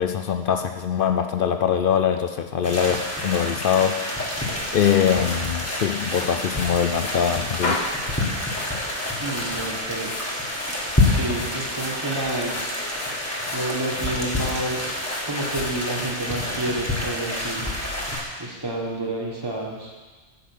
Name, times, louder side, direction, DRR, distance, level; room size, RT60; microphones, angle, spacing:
voice 1, 0.0-4.0 4.7-7.8, left 8 dB, 60° left, 7 dB, 0.6 m, -22 dB
sound 1, 2.6-18.2, left 2 dB, 15° left, 1.6 m, -28 dB
sound 2, 4.4-18.1, left 2 dB, 40° left, 1.1 m, -37 dB
voice 2, 9.2-10.1 11.0-12.7 13.5-17.7 18.4-19.9, right 2 dB, 20° right, -2 dB, 1.6 m, -29 dB
8.8 x 5.6 x 7.9 m, 1.4 s
omnidirectional pair, 1.2 m